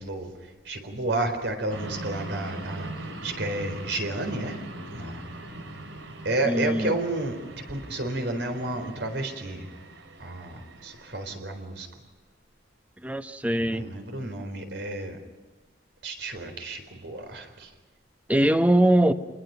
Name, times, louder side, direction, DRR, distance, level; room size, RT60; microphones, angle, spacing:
voice 1, 0.0-5.3 6.2-9.7 10.2-11.9 13.6-15.2 16.0-17.7, right 2 dB, 70° right, 6 dB, 4.2 m, -31 dB
sound 1, 1.7-11.4, right 1 dB, 90° right, 3.5 m, -41 dB
voice 2, 6.5-6.9 13.0-13.8 18.3-19.1, right 1 dB, 10° right, 8 dB, 1.0 m, -21 dB
28.5 x 20.5 x 5.8 m, 1.3 s
head